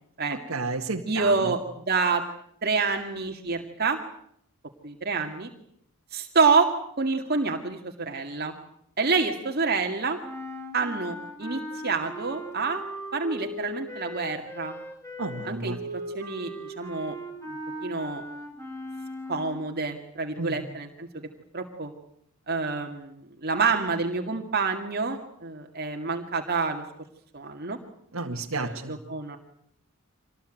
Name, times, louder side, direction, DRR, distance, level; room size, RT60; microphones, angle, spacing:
voice 1, 0.3-1.5 15.2-15.8 20.4-20.6 28.1-29.0, right 3 dB, 80° right, 0 dB, 2.0 m, -32 dB
voice 2, 1.1-1.6 1.9-2.2 2.6-4.0 4.8-5.5 6.1-8.5 9.0-10.2 10.7-12.8 13.1-14.7 15.4-15.8 16.1-17.2 17.8-18.2 19.3-21.1 21.5-21.9 22.5-26.8 27.3-27.8 28.5-29.4, right 4 dB, 50° right, 3 dB, 2.2 m, -27 dB
sound 1, 10.2-19.7, equal, 15° left, 6.2 m, -38 dB
25.5 x 19.5 x 9.2 m, 0.70 s
head